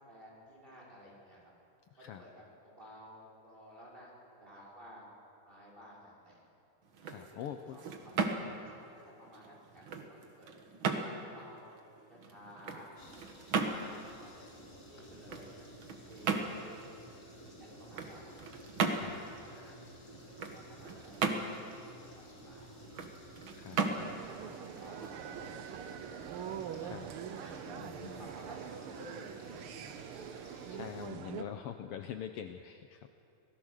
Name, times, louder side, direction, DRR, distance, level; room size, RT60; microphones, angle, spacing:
voice 1, 0.0-1.4 2.0-5.1 5.5-6.4 7.3-9.8 10.1-10.5 10.9-12.9 13.5-15.7 16.0-18.3 19.0-19.7 20.0-20.1 20.5-21.3 21.7-21.8 22.1-22.8 23.8-25.8 27.4-29.6, equal, 15° right, -5 dB, 6.2 m, -54 dB
sound 1, 6.8-25.7, right 4 dB, 50° right, 1.8 m, -38 dB
voice 2, 7.0-7.8 18.9-19.2 23.5-23.8 26.8-27.1 27.7-28.3 30.7-33.1, left 9 dB, 80° left, 7 dB, 1.3 m, -44 dB
sound 2, 13.0-31.1, equal, 30° left, 3.9 m, -53 dB
sound 3, 24.0-31.4, right 9 dB, 80° right, 1.2 m, -44 dB
26.0 x 18.0 x 6.5 m, 2.8 s
omnidirectional pair, 3.5 m